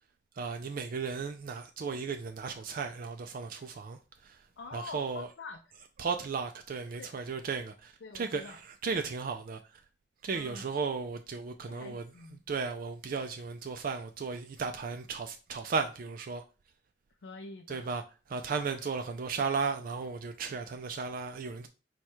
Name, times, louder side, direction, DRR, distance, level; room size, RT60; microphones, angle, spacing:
voice 1, 0.4-4.4 4.7-5.3 6.0-9.6 10.2-12.0 12.5-16.4 17.7-18.0 18.3-21.7, right 5 dB, 50° right, 0.4 m, -35 dB
voice 2, 4.6-5.6 7.0-7.1 8.0-8.6 10.3-10.7 11.7-12.4 17.2-17.9, left 3 dB, 65° left, 0.4 m, -45 dB
4.6 x 2.3 x 4.3 m
head